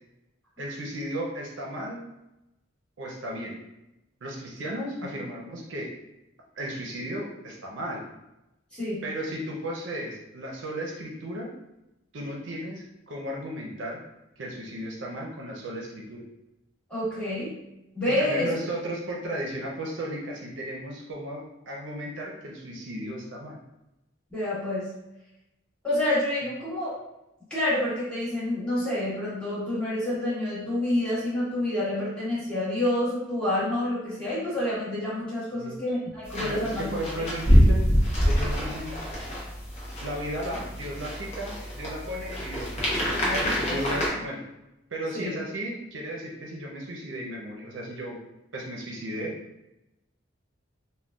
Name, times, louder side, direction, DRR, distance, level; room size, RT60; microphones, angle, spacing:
voice 1, 0.6-2.0 3.0-3.6 4.2-5.9 6.6-8.0 9.0-11.5 12.1-14.0 14.4-16.2 18.1-23.6 35.5-35.8 36.4-37.9 38.2-39.0 40.0-43.2 43.5-44.4 44.9-48.2 48.5-49.3, right 1 dB, 75° right, -1 dB, 0.6 m, -35 dB
voice 2, 8.7-9.0 16.9-17.6 17.9-18.5 24.3-24.9 25.8-26.9 27.5-36.8 43.2-44.0 45.1-45.3, left 1 dB, 5° left, -11 dB, 1.2 m, -28 dB
sound 1, 36.3-44.1, equal, 35° left, 0.7 m, -25 dB
3.7 x 2.2 x 2.3 m, 0.93 s
head